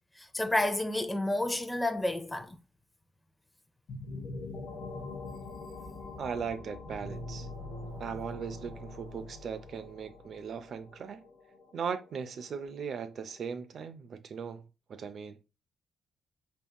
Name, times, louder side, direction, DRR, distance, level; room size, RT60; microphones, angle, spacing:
voice 1, 0.2-2.6, left 1 dB, 10° left, 0.4 m, -30 dB
sound 1, 3.9-13.4, left 3 dB, 65° left, 0.8 m, -46 dB
voice 2, 6.2-7.5 8.0-11.2 11.7-15.4, right 6 dB, 55° right, 0.4 m, -38 dB
sound 2, 6.9-10.6, left 1 dB, 85° right, 1.4 m, -44 dB
3.6 x 2.8 x 2.2 m
cardioid pair, 90°, 0 cm